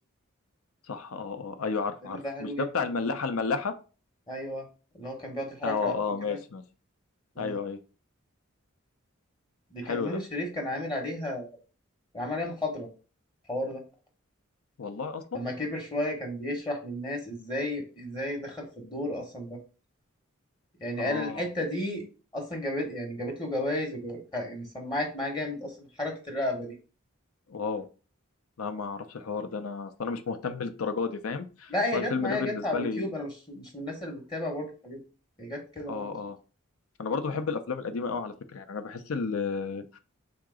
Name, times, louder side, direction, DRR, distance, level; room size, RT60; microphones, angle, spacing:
voice 1, 0.9-3.7 5.6-6.6 7.4-7.8 9.8-10.2 14.8-15.4 21.0-21.5 27.5-27.9 28.6-33.1 35.9-36.4 37.0-40.0, left 4 dB, 75° left, 10 dB, 0.6 m, -32 dB
voice 2, 2.0-2.7 4.3-4.7 4.9-6.0 6.3-6.4 7.4-7.6 9.7-11.5 12.1-12.9 13.5-13.8 15.3-19.6 20.8-22.1 22.3-26.7 31.7-35.0 35.4-36.1, left 1 dB, 20° left, 1 dB, 0.9 m, -33 dB
3.7 x 2.9 x 4.8 m, 0.36 s
head